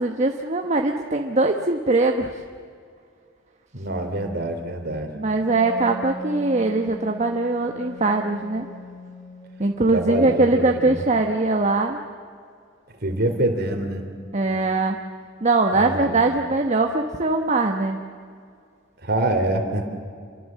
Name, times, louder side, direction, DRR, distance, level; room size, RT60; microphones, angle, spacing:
voice 1, 0.0-2.4 5.2-8.7 9.6-12.0 14.3-15.0 15.4-18.0, right 2 dB, 35° right, 3 dB, 1.1 m, -21 dB
voice 2, 3.7-5.1 9.9-11.0 13.0-14.0 15.7-16.2 19.0-19.9, right 1 dB, 55° right, 5 dB, 3.3 m, -25 dB
Wind instrument woodwind instrument, 5.5-10.9, right 1 dB, 40° left, 7.4 m, -39 dB
28.0 x 23.5 x 7.6 m, 2.2 s
head